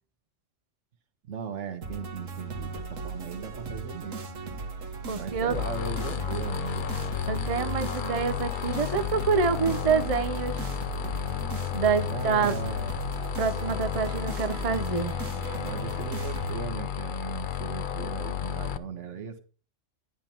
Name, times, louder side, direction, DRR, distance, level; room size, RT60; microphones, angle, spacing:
voice 1, 1.3-4.2 5.1-7.0 12.1-12.9 15.6-19.4, right 7 dB, 70° right, 1.4 m, -38 dB
sound 1, 1.8-16.6, right 4 dB, 90° right, 1.6 m, -37 dB
voice 2, 5.1-5.6 7.3-10.7 11.7-12.6 13.4-15.1, right 5 dB, 40° right, 0.6 m, -27 dB
sound 2, 5.5-18.8, left 9 dB, 50° left, 0.7 m, -32 dB
10.5 x 8.1 x 4.3 m
omnidirectional pair, 1.3 m